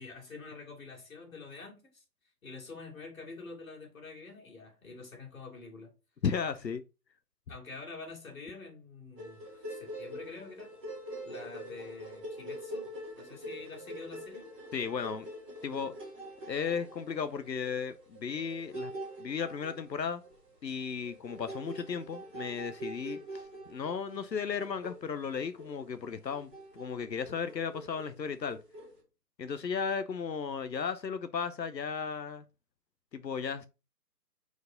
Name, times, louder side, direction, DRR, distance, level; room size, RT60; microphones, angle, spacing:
voice 1, 0.0-2.0 2.4-5.9 7.5-10.7 11.2-14.5, left 3 dB, 55° left, 2.8 m, -47 dB
voice 2, 6.2-6.8 14.7-15.3 15.6-16.0 16.5-18.9 19.2-20.2 20.6-28.6 29.4-32.4 33.1-33.7, left 6 dB, 85° left, 0.7 m, -35 dB
sound 1, 9.1-29.0, right 1 dB, 5° right, 1.1 m, -45 dB
4.7 x 4.5 x 5.1 m
figure-of-eight pair, 155°, 49 cm